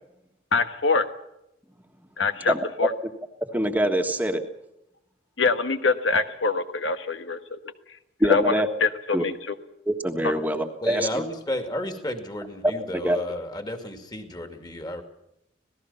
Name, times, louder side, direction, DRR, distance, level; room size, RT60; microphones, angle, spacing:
voice 1, 0.5-1.0 2.2-2.9 5.4-7.6 8.2-8.5 8.8-9.3 10.2-10.3, left 4 dB, 85° left, 9 dB, 1.4 m, -24 dB
voice 2, 2.5-2.9 3.5-4.4 8.2-8.7 9.1-9.2 9.9-11.2 12.6-13.2, right 1 dB, 10° right, 5 dB, 1.5 m, -24 dB
voice 3, 10.8-15.0, left 1 dB, 20° left, 6 dB, 2.6 m, -32 dB
26.5 x 18.0 x 5.7 m, 0.83 s
head